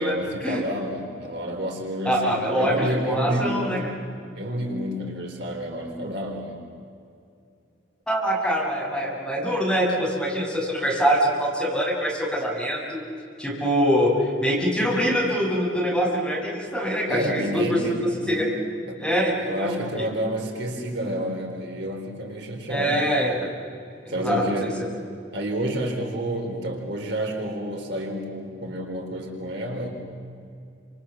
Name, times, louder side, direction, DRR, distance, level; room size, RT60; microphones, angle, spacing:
voice 1, 0.0-3.9 4.4-6.6 17.1-18.5 18.9-23.1 24.1-24.8 25.3-29.9, equal, 60° right, 0 dB, 4.0 m, -29 dB
voice 2, 2.0-3.8 8.1-13.0 13.4-17.8 18.3-18.5 19.0-20.0 22.7-23.5 24.0-24.7, equal, 5° left, -5 dB, 6.7 m, -24 dB
29.5 x 27.0 x 7.3 m, 2.5 s
head